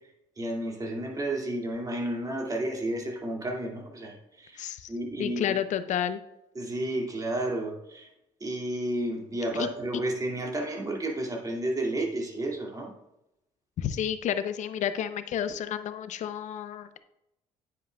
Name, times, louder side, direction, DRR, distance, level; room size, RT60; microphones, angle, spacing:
voice 1, 0.4-5.4 6.6-8.1 8.4-12.9, right 1 dB, 25° right, 0 dB, 2.4 m, -32 dB
voice 2, 4.6-4.9 5.2-6.2 9.5-9.7 13.8-17.0, left 9 dB, 65° left, 11 dB, 0.7 m, -30 dB
9.4 x 8.3 x 2.3 m, 0.87 s
supercardioid pair, 75°, 14 cm